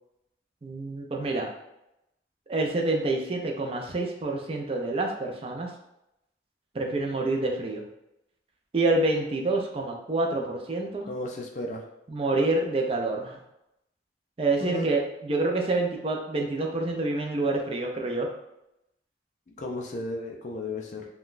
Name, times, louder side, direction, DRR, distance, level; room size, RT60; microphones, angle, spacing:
voice 1, 0.6-1.5 2.5-5.7 6.7-7.8 8.7-11.1 12.1-13.4 14.4-18.3, right 2 dB, 30° right, 1 dB, 0.4 m, -27 dB
voice 2, 11.0-11.8 14.6-14.9 19.6-21.1, left 2 dB, 40° left, 0 dB, 0.4 m, -34 dB
3.7 x 2.2 x 2.5 m, 0.87 s
head